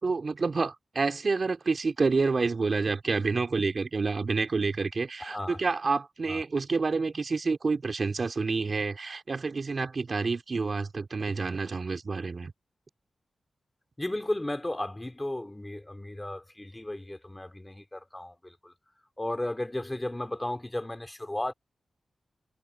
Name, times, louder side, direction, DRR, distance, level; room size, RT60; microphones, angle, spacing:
voice 1, 0.0-12.5, right 4 dB, 55° right, 3.0 m, -28 dB
voice 2, 5.2-5.6 6.3-6.4 14.0-18.7 19.2-21.5, left 1 dB, 20° left, 3.0 m, -34 dB
cardioid pair, 55°, 0 cm